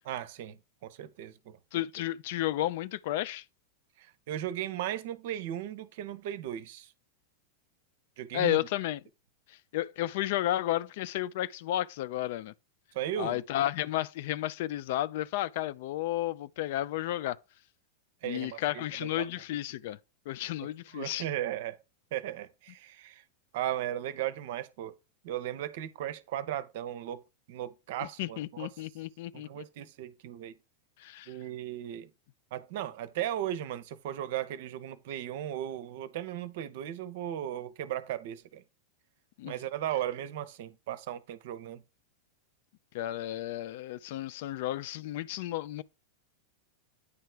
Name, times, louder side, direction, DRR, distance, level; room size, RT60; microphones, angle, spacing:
voice 1, 0.0-1.6 4.0-6.9 8.2-8.6 12.9-13.4 18.2-19.3 20.9-21.8 22.1-23.2 23.5-24.9 25.2-27.2 27.5-28.7 29.3-30.5 31.3-32.1 32.5-38.6 39.4-41.8, right 11 dB, 50° right, 0.6 m, -36 dB
voice 2, 1.7-3.4 8.3-9.0 9.5-12.5 13.2-17.4 18.2-20.0 20.3-21.2 28.2-29.6 31.0-31.3 39.4-39.5 42.9-45.8, left 14 dB, 50° left, 0.3 m, -32 dB
9.6 x 3.3 x 4.7 m
figure-of-eight pair, 90°, 0 cm